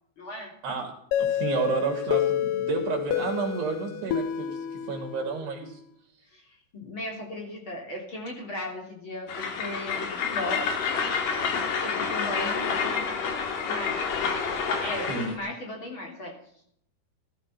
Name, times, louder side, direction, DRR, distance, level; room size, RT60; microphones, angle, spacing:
voice 1, 0.2-0.5 6.3-6.4 6.7-10.7 11.8-13.2 13.7-14.1 14.8-16.3, left 1 dB, 30° left, 1 dB, 3.5 m, -36 dB
sound 1, 1.1-5.8, left 10 dB, 75° left, 2.0 m, -29 dB
voice 2, 1.2-5.8 15.1-15.3, right 5 dB, 75° right, 2 dB, 4.7 m, -31 dB
Train, 9.3-15.4, left 5 dB, 55° left, 3.6 m, -28 dB
15.5 x 14.0 x 5.8 m, 0.69 s
omnidirectional pair, 4.9 m